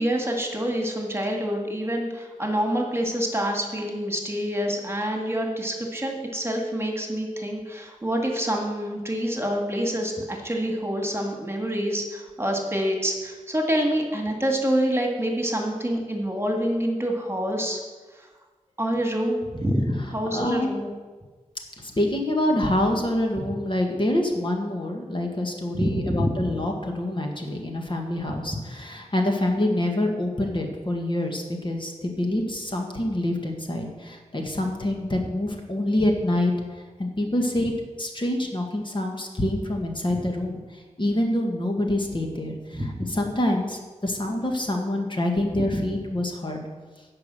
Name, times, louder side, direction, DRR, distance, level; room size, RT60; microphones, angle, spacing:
voice 1, 0.0-17.8 18.1-18.3 18.8-20.9 23.4-23.5 25.7-26.5 28.5-28.6 40.1-40.2 42.7-43.2 45.6-45.8, equal, 20° right, 2 dB, 2.0 m, -27 dB
voice 2, 20.3-20.8 21.8-36.5 37.0-46.6, left 1 dB, 40° left, 1 dB, 1.7 m, -26 dB
10.5 x 5.0 x 7.6 m, 1.3 s
cardioid pair, 50°, 13 cm